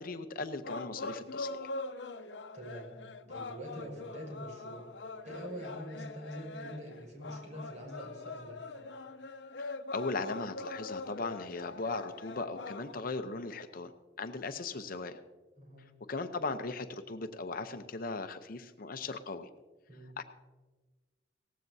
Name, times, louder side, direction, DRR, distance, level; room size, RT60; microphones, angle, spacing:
voice 1, 0.0-1.7 9.6-13.9 14.2-15.2 16.1-19.5 20.2-20.3, left 3 dB, 55° left, 9 dB, 0.7 m, -38 dB
sound 1, 0.6-12.9, left 3 dB, 85° left, 0.7 m, -43 dB
voice 2, 2.5-2.9 3.3-4.9 5.2-8.6 15.6-15.9 19.9-20.2, equal, 45° right, -2 dB, 5.2 m, -44 dB
18.0 x 15.0 x 2.7 m, 1.2 s
head